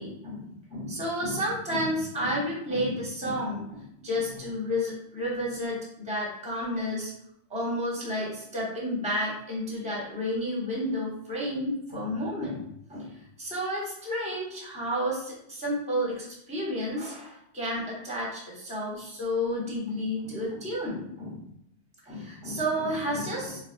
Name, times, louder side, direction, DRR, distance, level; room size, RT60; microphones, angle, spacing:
voice 1, 0.0-7.1 7.5-21.5 22.1-23.6, equal, 5° right, -4 dB, 0.8 m, -31 dB
4.4 x 2.2 x 2.4 m, 0.73 s
omnidirectional pair, 1.1 m